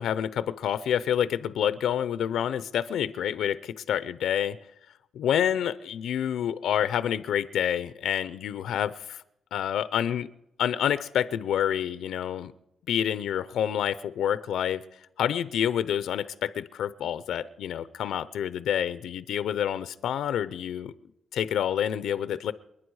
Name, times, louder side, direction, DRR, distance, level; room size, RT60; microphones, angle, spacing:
voice 1, 0.0-4.6 5.1-9.2 9.5-10.3 10.6-12.5 12.9-14.8 15.2-20.9 21.3-22.5, left 9 dB, 90° left, 15 dB, 0.5 m, -28 dB
28.0 x 9.9 x 4.8 m, 0.84 s
cardioid pair, 130°, 0 cm